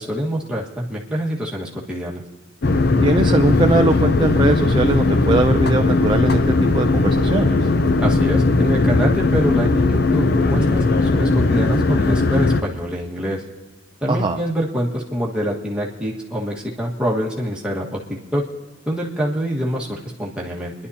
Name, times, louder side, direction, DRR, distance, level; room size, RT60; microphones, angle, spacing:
voice 1, 0.0-2.2 8.0-13.4 14.0-18.0 18.3-18.4 18.9-20.7, equal, 5° right, -4 dB, 1.5 m, -25 dB
sound 1, 2.6-12.6, left 3 dB, 50° left, 0.6 m, -18 dB
voice 2, 3.0-6.4 6.7-7.6 14.1-14.4, right 2 dB, 25° right, 4 dB, 0.4 m, -20 dB
29.5 x 11.0 x 2.8 m, 1.4 s
head